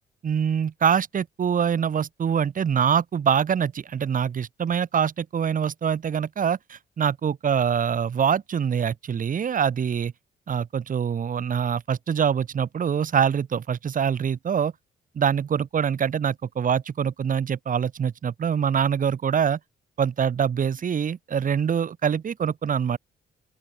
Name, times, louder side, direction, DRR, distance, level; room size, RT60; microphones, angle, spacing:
voice 1, 0.2-10.1 10.5-14.7 15.1-19.6 20.0-23.0, right 7 dB, 45° right, 1.1 m, -24 dB
open air
cardioid pair, 90°, 20 cm